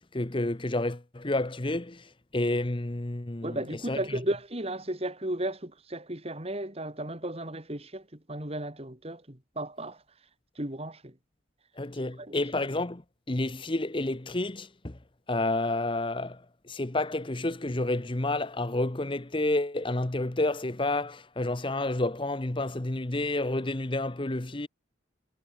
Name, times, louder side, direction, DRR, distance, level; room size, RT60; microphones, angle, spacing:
voice 1, 0.1-4.2 11.8-13.0 13.3-15.0 15.3-24.7, left 2 dB, 25° left, 1.0 m, -30 dB
voice 2, 3.4-10.0 10.6-11.1 12.2-12.4, right 1 dB, 30° right, 2.8 m, -34 dB
head